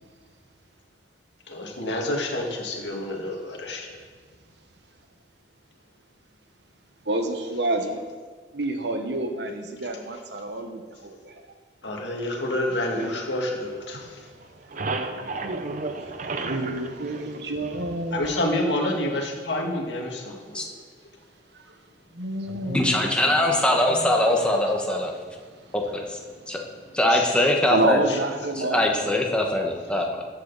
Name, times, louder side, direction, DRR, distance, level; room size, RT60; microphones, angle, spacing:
voice 1, 1.5-4.0 11.8-14.3 18.1-20.8 26.3-26.6 26.9-27.5 28.1-28.2 29.8-29.9, left 1 dB, 80° left, 0 dB, 2.0 m, -29 dB
voice 2, 7.0-8.1 8.5-11.3 13.9-14.0 15.2-15.6 15.9-18.4 18.7-18.9 21.5-21.8 22.1-25.1 27.7-29.2, right 2 dB, 70° right, 5 dB, 1.2 m, -30 dB
sound 1, 13.0-14.1 14.4-18.1, right 3 dB, 45° right, 0.7 m, -33 dB
voice 3, 22.6-25.1 25.7-26.2 26.5-26.6 26.9-28.0 28.6-30.2, left 1 dB, 5° left, 0 dB, 1.2 m, -22 dB
14.0 x 8.2 x 4.1 m, 1.5 s
head